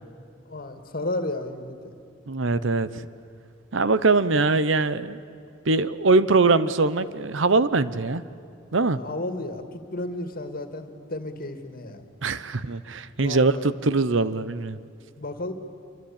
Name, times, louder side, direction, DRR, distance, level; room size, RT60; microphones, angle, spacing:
voice 1, 0.5-1.9 9.0-12.0 13.2-13.7 15.2-15.5, left 1 dB, 50° left, 7 dB, 2.2 m, -33 dB
voice 2, 2.3-2.9 3.7-5.2 5.7-8.2 8.7-9.0 12.2-14.8, right 3 dB, 70° right, 15 dB, 0.9 m, -22 dB
26.5 x 25.0 x 8.8 m, 2.6 s
head